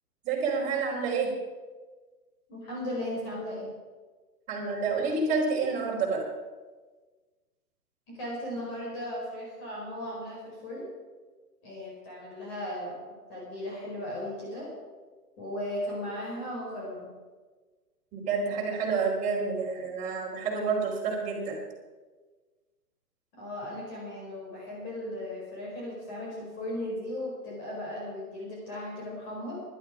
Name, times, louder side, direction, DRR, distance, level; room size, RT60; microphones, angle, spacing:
voice 1, 0.2-1.3 4.5-6.2 18.1-21.6, right 4 dB, 15° right, -4 dB, 3.7 m, -29 dB
voice 2, 2.5-3.7 8.1-10.9 11.6-13.0 13.3-14.7 15.4-17.1 23.3-29.6, left 1 dB, 25° left, -4 dB, 4.8 m, -36 dB
17.5 x 11.5 x 4.8 m, 1.3 s
hypercardioid pair, 145°, 46 cm